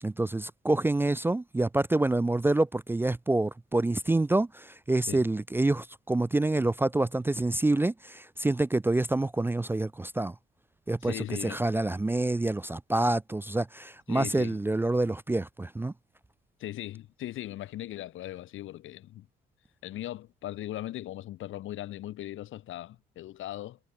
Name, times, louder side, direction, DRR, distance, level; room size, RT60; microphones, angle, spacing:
voice 1, 0.0-10.3 10.9-15.9, right 2 dB, 10° right, 0.4 m, -27 dB
voice 2, 11.0-11.6 14.1-14.6 16.6-19.3 19.8-23.8, left 14 dB, 80° left, 2.6 m, -39 dB
cardioid pair, 90°, 20 cm